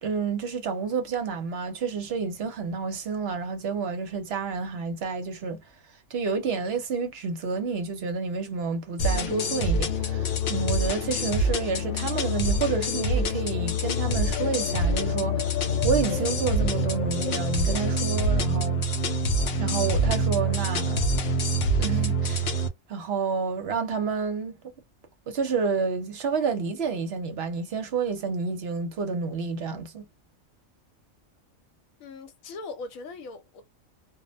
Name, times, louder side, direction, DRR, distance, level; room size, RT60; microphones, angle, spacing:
voice 1, 0.0-5.6 6.1-18.8 19.6-21.2 21.8-22.5 22.9-24.6 25.3-30.1, right 5 dB, 55° right, 0.8 m, -29 dB
sound 1, 9.0-22.7, equal, 60° left, 0.7 m, -26 dB
voice 2, 32.0-33.6, left 3 dB, 80° left, 1.1 m, -40 dB
2.4 x 2.1 x 2.5 m
omnidirectional pair, 1.4 m